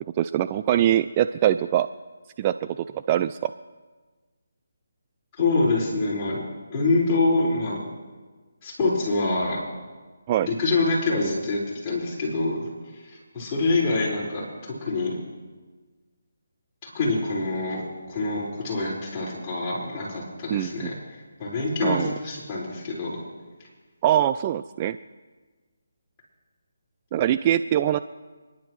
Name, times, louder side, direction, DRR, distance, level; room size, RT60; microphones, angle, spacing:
voice 1, 0.2-1.9 2.4-3.5 10.3-10.5 20.5-20.9 21.8-22.1 24.0-25.0 27.1-28.0, right 11 dB, 25° right, 12 dB, 0.3 m, -23 dB
voice 2, 5.4-6.4 6.7-7.8 8.6-9.6 10.4-12.6 12.9-15.2 16.8-20.9 21.4-23.1, left 3 dB, 20° left, -7 dB, 5.1 m, -25 dB
28.0 x 11.0 x 3.2 m, 1.3 s
figure-of-eight pair, 160°, 0 cm